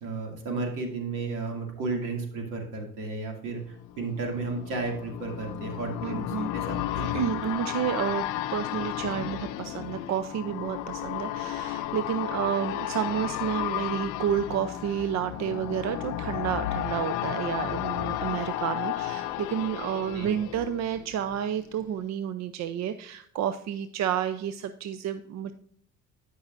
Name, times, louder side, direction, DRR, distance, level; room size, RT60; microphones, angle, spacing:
voice 1, 0.0-7.0 20.1-20.3, right 3 dB, 80° right, 2 dB, 2.5 m, -33 dB
sound 1, 3.6-21.4 21.7-21.8, left 13 dB, 70° left, 0.6 m, -33 dB
voice 2, 6.0-6.5 6.9-8.2 8.5-25.5, right 9 dB, 60° right, 11 dB, 0.5 m, -30 dB
12.5 x 5.5 x 2.5 m, 0.64 s
supercardioid pair, 85°, 32 cm